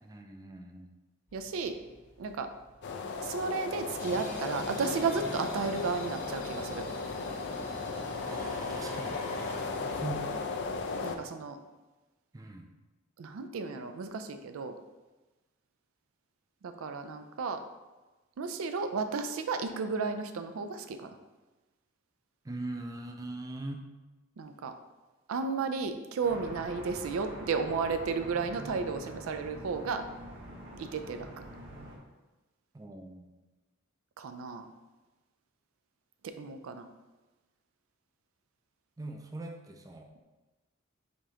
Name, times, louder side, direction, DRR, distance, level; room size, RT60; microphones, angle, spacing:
voice 1, 0.0-0.9 8.2-9.5 9.9-10.5 12.3-12.7 22.4-23.9 32.7-33.3 39.0-40.1, right 2 dB, 15° right, 3 dB, 0.4 m, -41 dB
sound 1, 1.3-11.1, left 1 dB, 35° left, 1.0 m, -44 dB
voice 2, 1.3-1.8 2.2-2.5 3.2-6.9 11.0-11.6 13.2-14.8 16.6-17.6 18.4-21.2 24.4-24.7 25.3-30.0 30.8-31.4 34.2-34.7 36.2-36.9, right 4 dB, 85° right, 8 dB, 0.4 m, -33 dB
sound 2, 2.8-11.2, left 4 dB, 60° left, 0.4 m, -36 dB
sound 3, 26.2-32.0, right 1 dB, 65° right, 1.0 m, -45 dB
5.1 x 3.6 x 2.8 m, 1.1 s
head